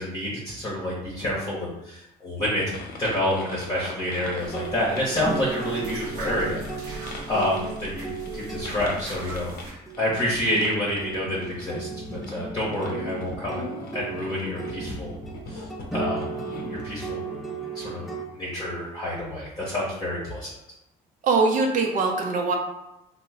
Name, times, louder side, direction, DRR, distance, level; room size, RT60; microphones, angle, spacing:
voice 1, 0.0-11.9 12.3-15.2 15.5-16.2 16.7-20.6, left 1 dB, 25° left, -6 dB, 0.9 m, -29 dB
sound 1, 2.6-16.8, left 3 dB, 60° left, 0.7 m, -41 dB
sound 2, 4.4-18.3, right 4 dB, ahead, 0.5 m, -35 dB
sound 3, 4.4-9.7, right 2 dB, 75° right, 0.9 m, -40 dB
voice 2, 21.2-22.6, right 4 dB, 50° right, 2 dB, 0.6 m, -22 dB
3.0 x 2.1 x 3.6 m, 0.86 s
cardioid pair, 110°, 17 cm